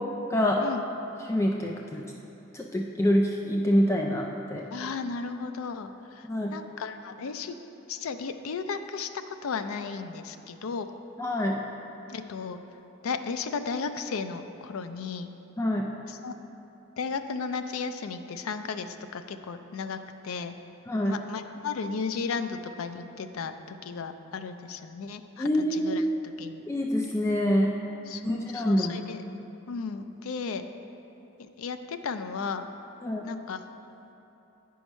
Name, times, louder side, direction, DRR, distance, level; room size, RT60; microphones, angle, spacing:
voice 1, 0.3-0.6 1.2-2.0 2.5-4.7 6.3-6.6 11.2-11.6 15.6-15.9 20.9-21.1 25.4-26.2 26.7-27.7 28.2-28.9 33.0-33.3, equal, 15° left, 0 dB, 0.3 m, -26 dB
voice 2, 4.7-7.6 7.9-9.1 9.4-10.9 12.1-12.6 13.0-15.3 16.1-16.3 17.0-20.0 20.2-20.5 21.0-23.5 23.8-26.0 26.4-26.6 28.1-29.2 29.7-30.6 31.4-32.7 33.2-33.6, left 5 dB, 90° left, 9 dB, 0.4 m, -34 dB
9.0 x 4.7 x 5.3 m, 3.0 s
head